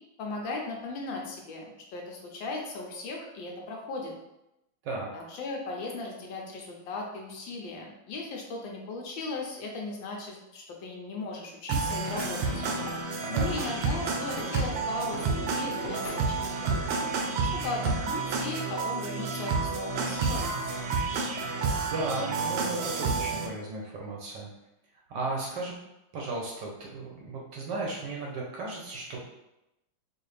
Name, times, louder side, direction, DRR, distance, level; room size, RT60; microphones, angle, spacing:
voice 1, 0.2-4.1 5.1-12.6 13.3-17.2 17.5-20.6, left 3 dB, 75° left, 0 dB, 1.3 m, -37 dB
sound 1, 11.7-23.5, right 4 dB, 85° right, 1.4 m, -30 dB
sound 2, 12.0-14.7 15.1-17.0, left 1 dB, 35° left, 0.5 m, -42 dB
voice 2, 13.2-13.7 21.5-21.6 21.9-24.5 25.1-25.7 26.1-29.2, right 2 dB, 70° right, -2 dB, 1.2 m, -35 dB
4.8 x 2.4 x 3.2 m, 0.89 s
omnidirectional pair, 2.3 m